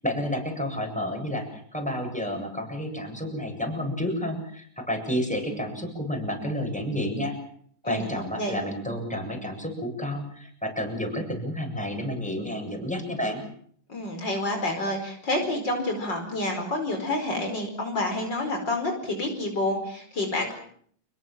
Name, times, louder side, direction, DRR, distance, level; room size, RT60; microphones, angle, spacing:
voice 1, 0.0-7.3 7.8-13.4, equal, 5° left, 3 dB, 7.6 m, -30 dB
voice 2, 13.9-20.5, left 1 dB, 55° left, 3 dB, 5.6 m, -28 dB
29.5 x 20.5 x 7.7 m, 0.62 s
omnidirectional pair, 2.3 m